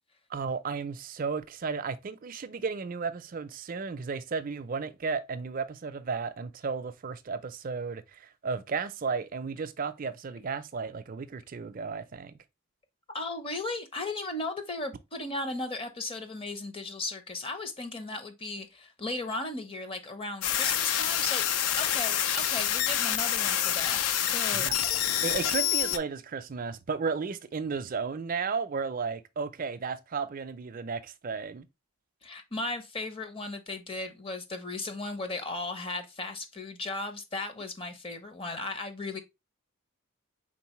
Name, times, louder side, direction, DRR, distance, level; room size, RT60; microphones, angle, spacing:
voice 1, 0.3-12.3 24.5-24.8 25.2-31.7, right 5 dB, 40° right, 0.4 m, -34 dB
voice 2, 13.1-21.4 21.8-24.0 24.3-24.7 32.2-39.2, left 2 dB, 25° left, 0.6 m, -36 dB
sound 1, 20.4-26.0, left 10 dB, 75° left, 0.4 m, -27 dB
4.6 x 3.8 x 3.0 m
head